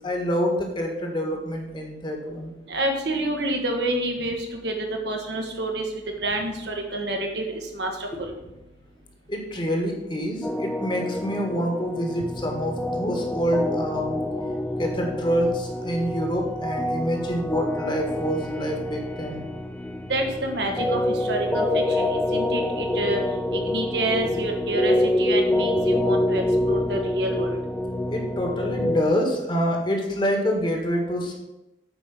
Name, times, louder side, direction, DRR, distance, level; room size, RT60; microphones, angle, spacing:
voice 1, 0.0-2.5 8.1-8.2 9.3-14.2 14.8-19.4 24.2-24.4 28.1-31.3, equal, 25° left, 2 dB, 1.6 m, -26 dB
voice 2, 2.7-8.3 20.1-27.6, right 1 dB, 65° right, 2 dB, 1.6 m, -28 dB
sound 1, 10.4-29.0, left 1 dB, 10° left, 0.4 m, -26 dB
8.5 x 5.1 x 6.0 m, 0.96 s
head